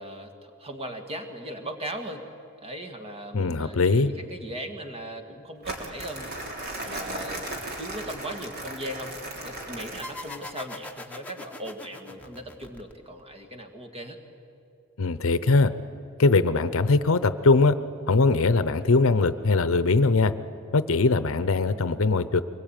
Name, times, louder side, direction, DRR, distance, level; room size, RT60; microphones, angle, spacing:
voice 1, 0.0-2.3 2.6-6.3 6.8-7.5 7.8-9.1 9.4-14.2, right 1 dB, 30° right, 5 dB, 2.1 m, -38 dB
voice 2, 3.3-4.1 15.0-15.7 16.2-17.8 18.1-20.3 20.7-22.4, left 3 dB, 70° left, 13 dB, 0.7 m, -21 dB
Crumpling crinkling, 5.6-10.5, right 1 dB, 50° right, 3.5 m, -36 dB
sound 1, 10.0-13.3, left 2 dB, 5° left, 1.4 m, -42 dB
24.0 x 21.0 x 9.1 m, 2.6 s
head